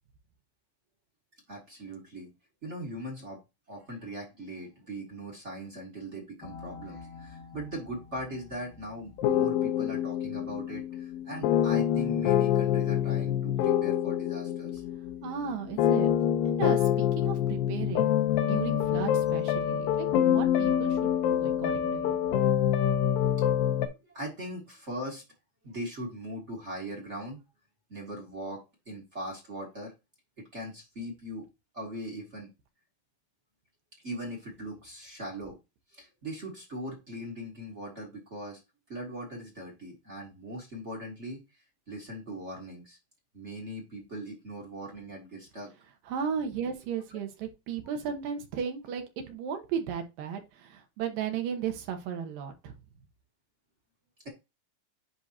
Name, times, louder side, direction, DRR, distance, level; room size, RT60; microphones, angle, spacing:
voice 1, 1.5-2.3 2.6-3.4 3.7-14.8 23.7-25.2 25.6-27.4 27.9-29.9 30.4-31.4 31.7-32.5 34.0-35.6 35.9-38.6 38.9-41.4 41.9-43.0 43.3-45.7, equal, 35° right, 0 dB, 1.1 m, -40 dB
sound 1, 6.4-8.0 9.2-23.9, left 10 dB, 80° left, 2.6 m, -26 dB
voice 2, 15.2-16.1 16.6-18.1 18.4-22.2 46.1-52.7, right 7 dB, 75° right, 5 dB, 2.8 m, -35 dB
10.5 x 3.6 x 2.9 m, 0.25 s
omnidirectional pair, 4.1 m